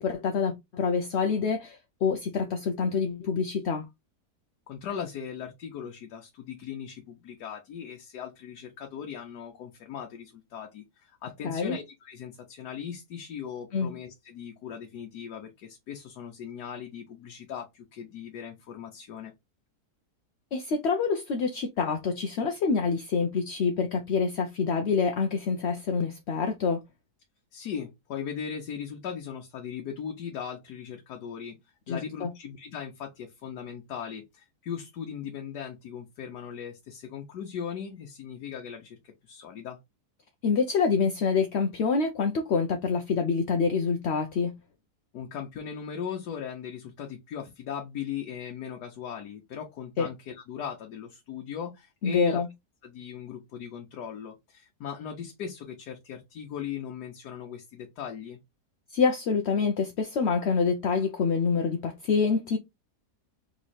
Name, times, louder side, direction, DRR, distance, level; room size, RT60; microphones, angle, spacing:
voice 1, 0.0-3.9 11.4-11.8 13.7-13.9 20.5-26.8 31.9-32.3 40.4-44.5 50.0-50.1 52.0-52.5 58.9-62.6, left 5 dB, 65° left, 0.7 m, -26 dB
voice 2, 4.7-19.3 27.5-31.6 31.9-39.0 39.2-39.8 45.1-52.4 52.8-58.4, left 8 dB, 80° left, 1.4 m, -38 dB
3.7 x 3.1 x 4.1 m
omnidirectional pair, 1.7 m